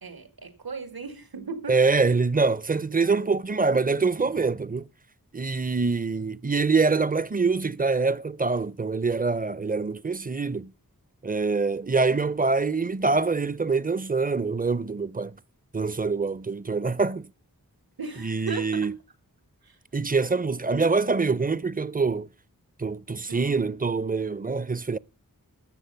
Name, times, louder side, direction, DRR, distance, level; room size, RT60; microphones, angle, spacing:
voice 1, 0.0-2.0 3.0-3.3 18.0-18.9 19.6-19.8 23.3-23.7, right 5 dB, 80° right, 2.1 m, -37 dB
voice 2, 1.7-4.9 5.3-10.7 11.2-15.4 15.7-17.3 18.2-18.9 19.9-22.3 22.8-25.0, right 4 dB, 25° right, 0.5 m, -25 dB
13.0 x 7.8 x 5.6 m
wide cardioid pair, 55°, 36 cm